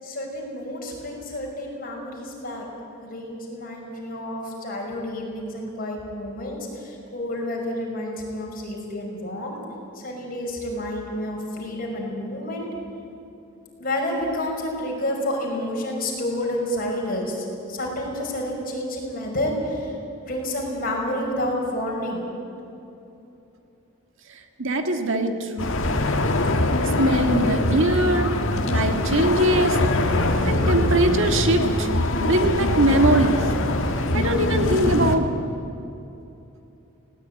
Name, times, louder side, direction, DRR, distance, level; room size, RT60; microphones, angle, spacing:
voice 1, 0.0-2.7 3.0-9.6 9.9-12.7 13.8-20.0 20.3-22.2, left 1 dB, 40° left, -1 dB, 5.7 m, -29 dB
voice 2, 24.3-25.7 26.8-28.3 28.7-29.8 30.4-31.9 32.2-33.5 34.1-35.3, right 1 dB, 60° right, 6 dB, 1.7 m, -22 dB
sound 1, 25.6-35.2, left 1 dB, 60° left, 1.9 m, -23 dB
19.5 x 18.0 x 9.4 m, 2.8 s
head